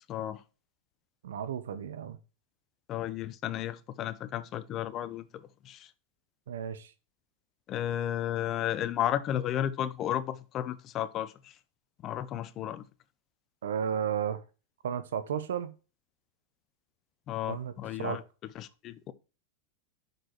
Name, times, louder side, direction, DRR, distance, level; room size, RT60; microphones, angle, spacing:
voice 1, 0.1-0.4 2.9-5.9 7.7-11.5 12.0-12.8 17.3-18.2 18.5-19.1, left 11 dB, 40° left, 0.7 m, -33 dB
voice 2, 1.2-2.2 6.5-6.9 13.6-14.4 14.8-15.7 17.5-17.7 18.0-18.2, right 8 dB, 80° right, 0.9 m, -33 dB
6.2 x 5.2 x 4.5 m
hypercardioid pair, 110°, 0 cm